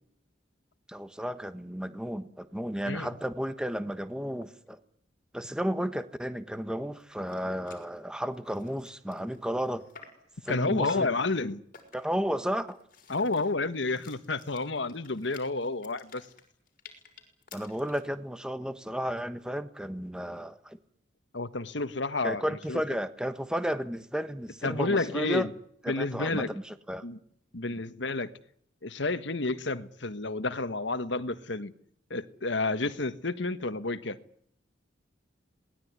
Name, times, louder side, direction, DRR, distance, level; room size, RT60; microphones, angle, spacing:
voice 1, 0.9-4.8 5.3-9.8 10.4-11.1 11.9-12.8 17.5-20.8 22.2-25.5 26.0-27.0, equal, 5° right, 1.3 m, -33 dB
sound 1, 7.0-7.1 7.3-7.4 7.7-7.9 8.3-10.3 10.8-11.2 11.7-12.2 12.7-18.1, left 4 dB, 45° left, 6.2 m, -51 dB
voice 2, 10.5-11.6 13.1-16.3 21.3-22.8 24.6-25.5 25.9-26.5 27.0-27.2 27.5-28.3 28.8-31.7 32.1-34.2, left 3 dB, 70° left, 1.5 m, -30 dB
26.5 x 20.0 x 9.7 m
head